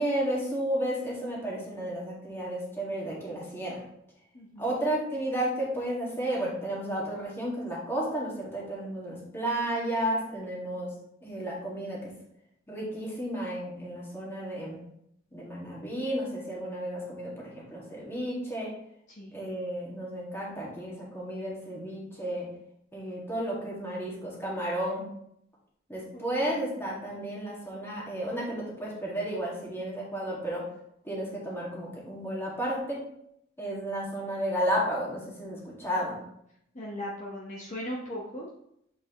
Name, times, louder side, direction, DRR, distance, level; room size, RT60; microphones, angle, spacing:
voice 1, 0.0-3.8 4.6-10.9 11.2-12.1 12.7-14.8 15.3-18.7 19.3-22.5 22.9-25.1 25.9-30.7 31.0-33.0 33.6-36.2, right 1 dB, 10° left, -5 dB, 1.9 m, -32 dB
voice 2, 4.3-4.7 19.1-19.3 26.1-26.2 26.5-26.7 36.7-38.5, left 1 dB, 40° left, -4 dB, 1.0 m, -38 dB
7.5 x 4.7 x 3.0 m, 0.75 s
head